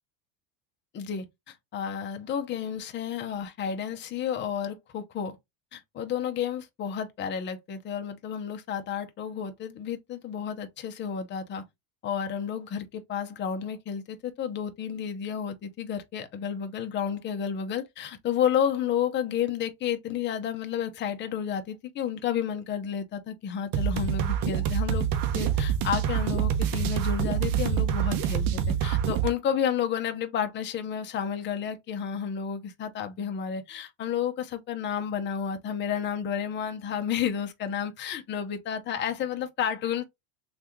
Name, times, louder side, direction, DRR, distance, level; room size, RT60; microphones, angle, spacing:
voice 1, 0.9-5.4 5.7-11.6 12.0-25.0 25.3-40.0, left 8 dB, 25° left, 0.5 m, -31 dB
sound 1, 23.7-29.3, right 9 dB, 45° right, 0.7 m, -26 dB
3.3 x 2.4 x 2.9 m
supercardioid pair, 115°, 50 cm